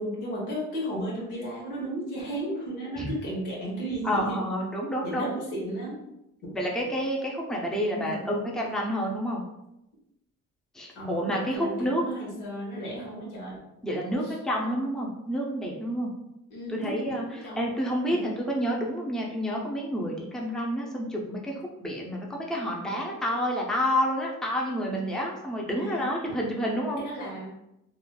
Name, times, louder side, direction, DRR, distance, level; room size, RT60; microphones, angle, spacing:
voice 1, 0.0-4.4 5.0-6.0 6.4-6.5 7.9-8.2 10.9-13.6 14.2-14.3 16.5-17.6 18.1-18.3 25.7-26.1 27.0-27.5, right 1 dB, 90° left, -4 dB, 1.2 m, -34 dB
voice 2, 4.0-5.3 6.5-9.4 10.7-12.0 13.8-16.1 16.7-27.0, equal, ahead, -2 dB, 0.5 m, -29 dB
3.0 x 2.4 x 2.2 m, 0.86 s
cardioid pair, 90°, 30 cm